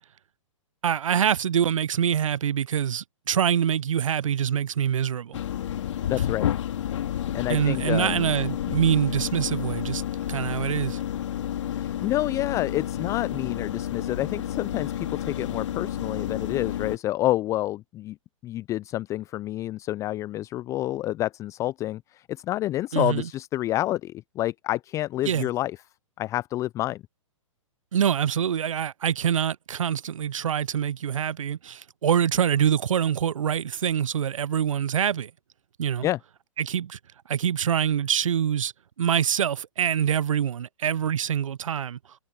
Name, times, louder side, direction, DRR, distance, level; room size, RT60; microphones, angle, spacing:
voice 1, 0.8-5.4 7.5-10.0 10.3-11.0 22.9-23.3 25.2-25.5 27.9-35.3 35.8-36.1 36.6-37.0 37.3-38.7 39.0-42.0, right 9 dB, 70° right, 0.7 m, -25 dB
sound 1, 5.3-17.0, left 10 dB, 60° left, 2.9 m, -30 dB
voice 2, 6.1-6.5 7.3-8.3 11.7-18.2 18.4-25.7 26.2-27.0 36.0-36.2, left 15 dB, 20° left, 0.4 m, -28 dB
hypercardioid pair, 120°, 17 cm